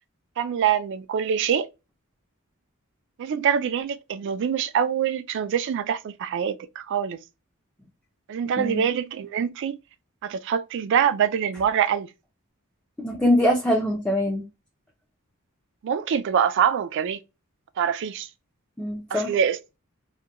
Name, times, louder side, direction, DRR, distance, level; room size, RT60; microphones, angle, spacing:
voice 1, 0.4-1.7 3.2-7.2 8.3-9.8 10.2-12.1 15.8-17.2 17.8-18.3 19.1-19.8, right 8 dB, 60° right, 0.3 m, -24 dB
voice 2, 13.0-14.4 18.8-19.3, left 1 dB, 5° left, 0.5 m, -23 dB
2.8 x 2.2 x 2.3 m
head